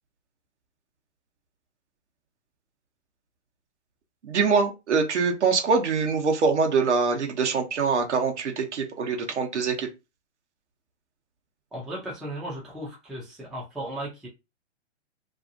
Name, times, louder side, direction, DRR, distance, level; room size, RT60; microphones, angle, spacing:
voice 1, 4.2-9.9, right 5 dB, 75° right, 1.0 m, -24 dB
voice 2, 11.7-14.3, right 1 dB, ahead, 0.4 m, -36 dB
2.7 x 2.5 x 2.6 m
hypercardioid pair, 125°, 35 cm